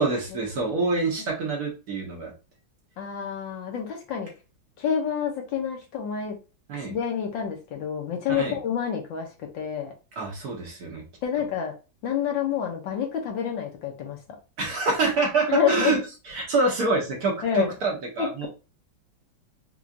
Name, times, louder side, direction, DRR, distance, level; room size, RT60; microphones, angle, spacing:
voice 1, 0.0-2.3 6.7-6.9 8.3-8.6 10.2-11.0 14.6-16.0 16.2-18.5, right 3 dB, 60° right, 0 dB, 1.2 m, -26 dB
voice 2, 3.0-4.3 4.8-6.4 6.7-9.3 9.5-9.9 11.2-11.7 12.0-14.2 15.5-16.0 17.4-17.7 18.2-18.5, left 8 dB, 70° left, 2 dB, 1.5 m, -28 dB
4.6 x 2.4 x 2.5 m, 0.31 s
omnidirectional pair, 2.2 m